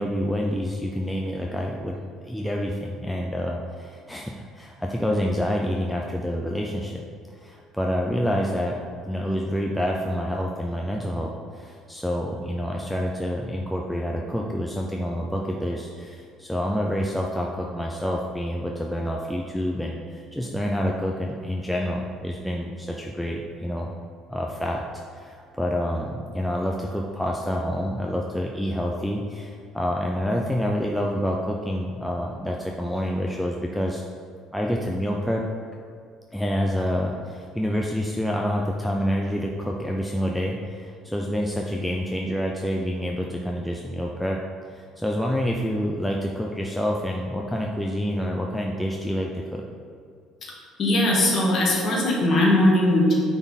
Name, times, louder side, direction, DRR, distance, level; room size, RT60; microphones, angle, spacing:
voice 1, 0.0-2.0 2.2-7.0 7.4-8.8 9.0-23.9 24.3-24.8 25.1-34.0 34.5-35.5 36.3-44.4 44.7-49.6, equal, ahead, -1 dB, 0.4 m, -27 dB
voice 2, 50.5-53.1, left 1 dB, 35° left, -3 dB, 1.6 m, -20 dB
9.1 x 4.1 x 4.0 m, 2.2 s
cardioid pair, 170°, 0 cm